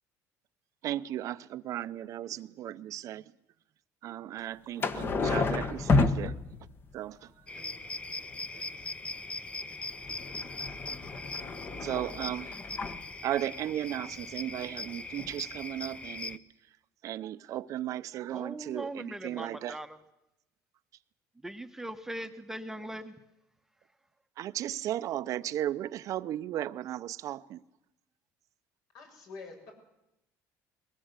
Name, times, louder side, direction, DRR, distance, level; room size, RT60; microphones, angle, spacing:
voice 1, 0.8-3.2 4.0-6.3 6.9-7.2 7.6-7.7 11.8-12.5 13.2-16.4 17.0-19.8 24.4-27.6, right 12 dB, 55° right, 0.7 m, -35 dB
sound 1, 4.8-6.9 9.8-13.0 14.9-15.0 15.2-15.3, left 3 dB, 35° left, 1.4 m, -30 dB
sound 2, 7.5-16.4, left 3 dB, 15° left, 0.8 m, -40 dB
voice 2, 18.3-20.0 21.4-23.1, right 1 dB, 5° right, 1.0 m, -40 dB
voice 3, 28.9-29.7, left 4 dB, 65° left, 7.4 m, -46 dB
21.5 x 17.5 x 8.2 m
cardioid pair, 115°, 7 cm